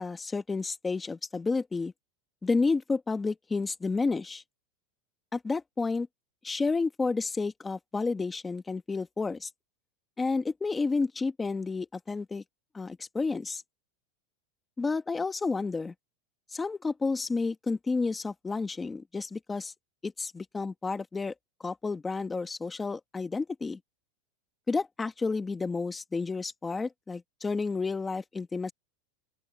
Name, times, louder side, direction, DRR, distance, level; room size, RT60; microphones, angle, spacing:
voice 1, 0.0-1.9 2.4-4.4 5.3-6.1 6.4-9.5 10.2-12.4 12.7-13.6 14.8-15.9 16.5-19.7 20.0-21.3 21.6-23.8 24.7-28.7, left 4 dB, 10° left, 1.5 m, -31 dB
open air
supercardioid pair, 150°, 0 cm